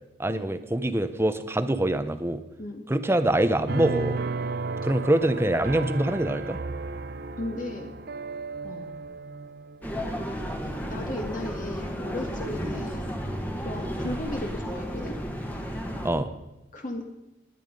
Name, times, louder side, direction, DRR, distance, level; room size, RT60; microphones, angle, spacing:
voice 1, 0.2-2.4 2.9-4.2 4.8-6.6 12.6-12.7 14.0-14.1 16.0-16.3, right 1 dB, 15° right, 10 dB, 0.8 m, -25 dB
sound 1, 3.7-10.9 11.3-12.0, right 3 dB, 55° right, 0.6 m, -34 dB
voice 2, 7.4-7.9 8.6-9.0 10.8-13.1 13.6-15.2 16.7-17.0, left 1 dB, 45° left, 2 dB, 1.8 m, -35 dB
sound 2, 9.8-16.1, equal, 10° left, 1.6 m, -33 dB
20.5 x 9.6 x 5.3 m, 0.98 s
head